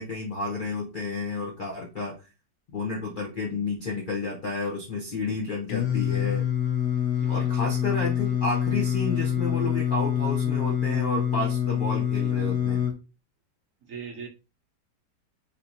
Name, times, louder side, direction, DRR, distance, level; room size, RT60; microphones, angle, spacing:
voice 1, 0.0-2.1 2.7-6.5 7.3-12.8, left 2 dB, 90° left, -2 dB, 0.4 m, -31 dB
Singing, 5.7-12.9, left 10 dB, 75° left, 1.2 m, -26 dB
voice 2, 7.2-7.5 13.9-14.3, right 6 dB, 65° right, 2 dB, 0.8 m, -39 dB
3.5 x 2.8 x 2.6 m, 0.31 s
omnidirectional pair, 1.9 m